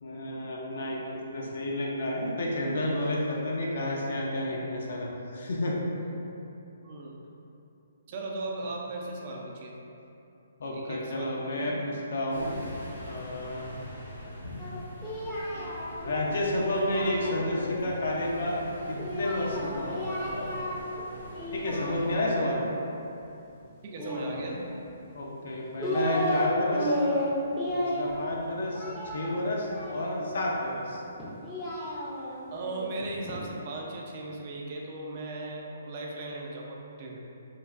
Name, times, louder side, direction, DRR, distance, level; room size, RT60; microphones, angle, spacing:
voice 1, 0.0-1.0 1.3-5.8 10.6-12.6 13.0-13.7 14.4-14.6 15.1-15.2 15.5-15.8 16.0-20.3 21.5-22.6 25.1-27.0 27.7-31.0, left 1 dB, 65° left, -2 dB, 0.5 m, -31 dB
voice 2, 8.1-9.7 10.7-11.7 23.8-24.6 32.5-37.2, right 2 dB, 45° right, -1 dB, 0.4 m, -37 dB
sound 1, 12.3-22.2, left 1 dB, 90° left, 0.8 m, -43 dB
Singing, 14.6-17.8 19.0-21.0 21.3-22.5 23.9-24.9 25.5-26.5 26.7-30.4 31.2-33.4, equal, 15° left, 0.5 m, -33 dB
3.1 x 2.2 x 2.4 m, 2.8 s
figure-of-eight pair, 135°, 0 cm